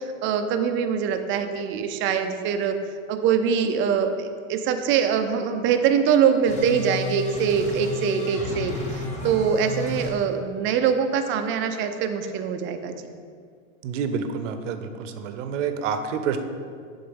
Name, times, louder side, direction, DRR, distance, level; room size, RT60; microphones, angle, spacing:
voice 1, 0.0-2.8 3.1-13.1, right 7 dB, 30° right, 7 dB, 0.5 m, -23 dB
sound 1, 6.5-10.1, left 2 dB, 15° left, 1.2 m, -32 dB
voice 2, 13.8-16.4, right 6 dB, 65° right, 9 dB, 0.7 m, -28 dB
6.7 x 3.9 x 5.4 m, 2.1 s
hypercardioid pair, 120°, 40 cm